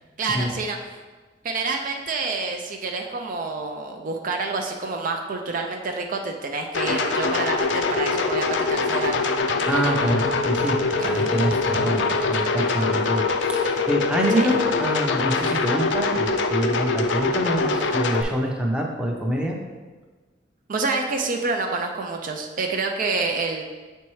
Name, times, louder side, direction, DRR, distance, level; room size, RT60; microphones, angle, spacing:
voice 1, 0.2-0.8 1.4-9.2 11.0-11.3 14.3-14.5 20.7-23.6, right 3 dB, 50° right, 3 dB, 0.4 m, -28 dB
sound 1, 6.7-18.2, left 3 dB, 75° left, 0.5 m, -23 dB
voice 2, 9.6-10.8 11.0-19.6, right 1 dB, 5° right, -1 dB, 0.7 m, -26 dB
7.0 x 4.4 x 3.1 m, 1.3 s
head